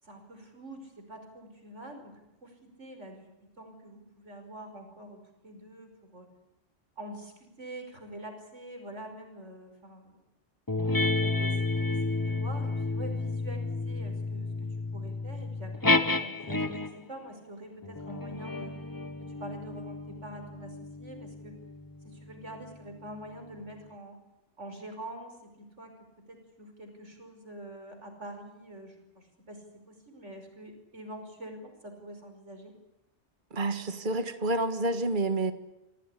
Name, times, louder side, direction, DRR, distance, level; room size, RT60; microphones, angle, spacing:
voice 1, 0.0-3.3 3.6-6.3 7.0-10.2 11.2-18.7 19.2-21.6 22.0-24.2 24.6-25.9 26.3-32.7, right 1 dB, 80° right, 5 dB, 5.8 m, -45 dB
sound 1, 10.7-17.1 17.8-22.7, left 3 dB, 20° left, 1.0 m, -31 dB
voice 2, 33.5-35.5, right 2 dB, 45° right, 9 dB, 1.8 m, -29 dB
27.0 x 18.0 x 10.0 m, 0.95 s
omnidirectional pair, 1.2 m